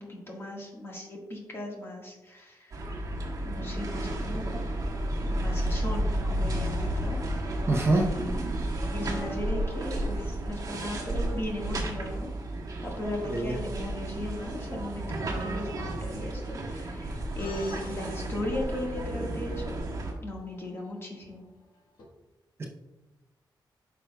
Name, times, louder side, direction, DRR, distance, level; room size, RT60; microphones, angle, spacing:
voice 1, 0.0-3.0 3.4-4.6 5.3-7.2 7.4-7.6 7.9-8.6 8.9-12.3 12.8-19.8 20.2-21.5, left 1 dB, 30° left, -1 dB, 1.5 m, -37 dB
sound 1, 2.7-20.1, right 1 dB, 50° right, 1.3 m, -32 dB
voice 2, 7.7-8.1 13.3-13.6 22.6-22.7, right 2 dB, 35° right, 0 dB, 0.6 m, -24 dB
sound 2, 17.4-22.0, left 3 dB, 70° left, 1.3 m, -51 dB
9.2 x 5.8 x 2.2 m, 1.1 s
wide cardioid pair, 170°, 8 cm